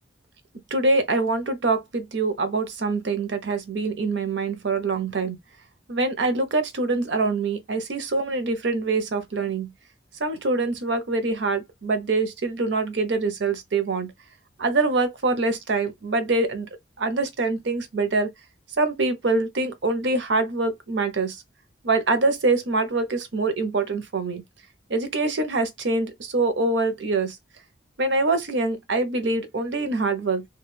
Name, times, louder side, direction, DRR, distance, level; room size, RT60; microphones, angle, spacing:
voice 1, 0.7-5.4 5.9-9.7 10.2-14.1 14.6-16.7 17.0-18.3 18.8-21.4 21.8-24.4 24.9-27.4 28.0-30.5, right 3 dB, 75° right, 0.7 m, -24 dB
2.4 x 2.3 x 3.2 m
head